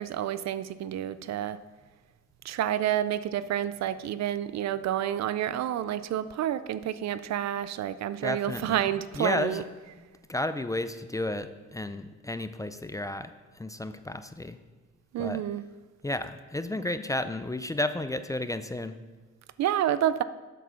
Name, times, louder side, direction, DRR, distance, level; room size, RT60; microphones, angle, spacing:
voice 1, 0.0-1.6 2.4-9.6 15.1-15.6 16.8-16.9 19.6-20.2, right 11 dB, 60° right, 15 dB, 0.5 m, -29 dB
voice 2, 8.2-8.8 9.2-9.6 10.3-14.6 15.2-15.4 16.0-19.0, left 1 dB, 10° left, 10 dB, 0.4 m, -32 dB
8.1 x 7.2 x 5.8 m, 1.3 s
cardioid pair, 90°, 30 cm